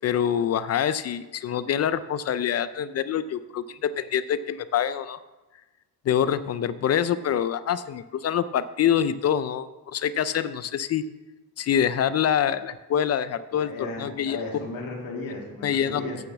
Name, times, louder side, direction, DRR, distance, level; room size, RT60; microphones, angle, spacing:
voice 1, 0.0-5.2 6.1-11.0 11.6-14.4 15.6-16.0, left 9 dB, 40° left, 15 dB, 0.4 m, -25 dB
voice 2, 13.5-16.2, left 2 dB, 60° left, -3 dB, 2.6 m, -35 dB
8.4 x 6.5 x 7.1 m, 1.1 s
cardioid pair, 125°, 38 cm